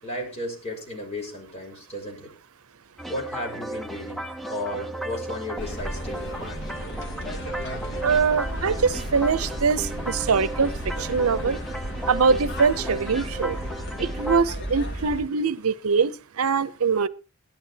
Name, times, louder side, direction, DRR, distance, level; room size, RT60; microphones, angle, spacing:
voice 1, 0.0-2.3 3.1-6.4, left 1 dB, 30° left, 5.5 m, -34 dB
sound 1, 3.0-14.4, right 1 dB, ahead, 0.7 m, -35 dB
sound 2, 5.6-15.2, equal, 60° left, 2.7 m, -34 dB
voice 2, 8.0-10.7 11.0-11.6 12.1-13.6 14.0-17.1, right 5 dB, 80° right, 0.7 m, -23 dB
17.5 x 12.0 x 2.9 m
head